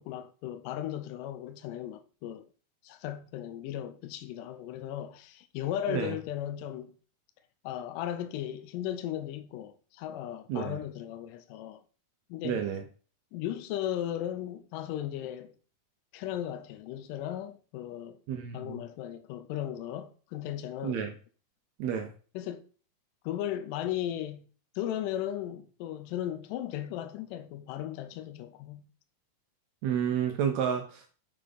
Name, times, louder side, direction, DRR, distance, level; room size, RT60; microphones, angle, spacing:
voice 1, 0.0-2.5 2.8-6.9 7.6-11.8 12.3-12.7 13.3-15.5 16.1-18.2 18.5-21.0 22.4-22.6 23.2-24.5 24.8-28.9, left 11 dB, 80° left, 2.1 m, -36 dB
voice 2, 12.4-12.8 18.3-18.8 20.8-21.1 21.8-22.1 29.8-31.1, right 8 dB, 80° right, 1.6 m, -30 dB
6.4 x 4.3 x 3.9 m
omnidirectional pair, 4.0 m